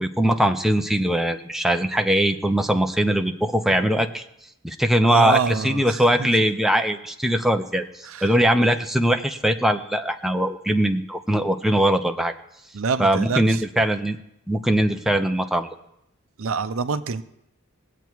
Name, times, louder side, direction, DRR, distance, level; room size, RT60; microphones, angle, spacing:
voice 1, 0.0-4.2 4.6-12.3 13.0-14.2 14.5-15.7, right 1 dB, ahead, 5 dB, 0.6 m, -21 dB
voice 2, 5.0-6.3 8.0-8.3 12.7-13.6 16.4-17.2, right 5 dB, 70° right, 12 dB, 0.6 m, -26 dB
21.0 x 8.2 x 4.6 m, 0.81 s
head